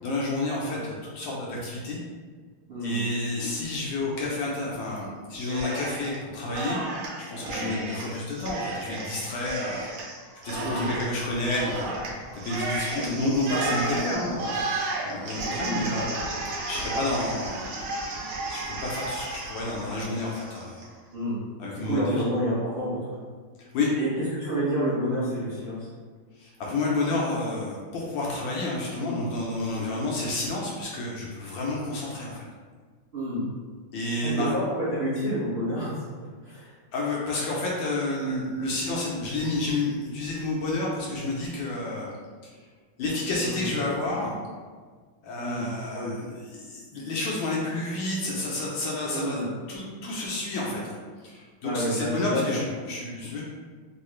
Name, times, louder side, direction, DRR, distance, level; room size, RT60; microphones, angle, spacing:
voice 1, 0.0-2.0 2.8-6.8 7.2-9.9 10.4-12.0 12.4-14.6 15.0-16.1 16.7-20.8 21.6-22.3 23.7-23.9 26.4-32.4 33.9-34.5 36.9-42.1 42.4-42.5 43.0-44.3 45.2-49.4 49.7-51.0 51.2-53.4, left 2 dB, 75° left, -4 dB, 1.2 m, -30 dB
voice 2, 2.7-3.0 7.5-7.9 10.6-10.9 12.9-13.2 15.6-15.9 21.1-21.4 21.8-23.2 23.9-24.1 24.4-25.9 29.0-29.3 33.1-33.4 34.2-36.7 43.4-43.7 45.4-46.1 49.1-49.5 51.6-52.6, equal, 45° right, -12 dB, 0.8 m, -29 dB
Cheering, 5.3-6.2 6.5-20.9, right 2 dB, 85° right, 1.6 m, -33 dB
3.7 x 2.4 x 3.0 m, 1.5 s
omnidirectional pair, 2.3 m